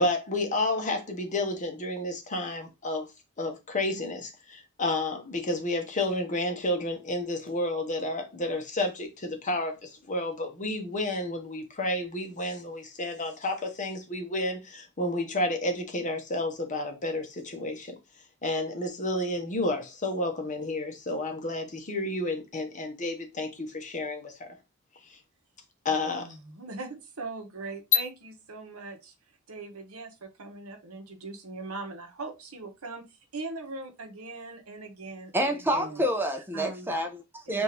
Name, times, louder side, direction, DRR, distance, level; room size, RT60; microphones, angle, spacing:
voice 1, 0.0-3.1 3.4-18.0 18.4-24.5 25.1-25.2 25.8-26.3, left 1 dB, 35° left, 0.9 m, -31 dB
voice 2, 25.9-29.1 29.5-33.0 33.3-36.0 36.5-36.9 37.5-37.6, right 3 dB, 80° right, 1.0 m, -40 dB
voice 3, 35.3-37.6, right 1 dB, 10° right, 0.7 m, -28 dB
3.6 x 2.6 x 4.4 m
head